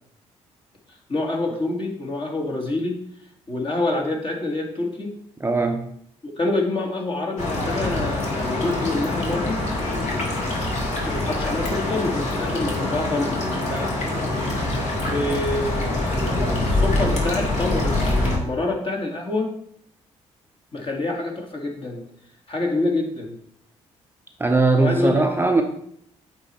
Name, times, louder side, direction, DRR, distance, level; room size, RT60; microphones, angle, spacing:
voice 1, 0.9-3.0 3.5-5.1 6.2-9.7 11.0-14.0 15.0-19.5 20.7-22.0 22.5-23.4 24.8-25.3, left 2 dB, 40° left, 0 dB, 1.9 m, -27 dB
voice 2, 5.4-5.8 24.4-25.6, right 3 dB, 15° right, 4 dB, 0.7 m, -19 dB
sound 1, 7.4-18.4, left 2 dB, 55° left, 2.1 m, -24 dB
8.4 x 3.1 x 4.3 m, 0.67 s
hypercardioid pair, 50°, 14 cm